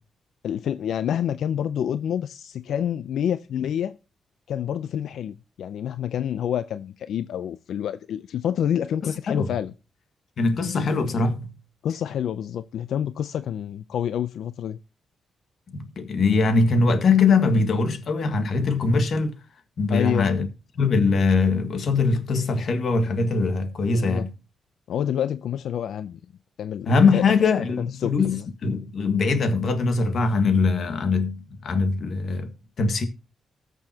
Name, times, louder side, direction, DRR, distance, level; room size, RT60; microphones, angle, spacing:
voice 1, 0.4-4.0 4.5-9.7 11.8-14.8 19.9-20.3 23.9-24.3 24.9-26.2 26.6-27.2 27.8-28.4, left 9 dB, 85° left, 0.4 m, -28 dB
voice 2, 9.0-9.6 10.4-11.5 15.7-19.4 19.8-20.5 20.8-24.3 26.9-33.1, left 4 dB, 55° left, 1.6 m, -22 dB
20.0 x 6.9 x 2.8 m
wide cardioid pair, 140°, 0 cm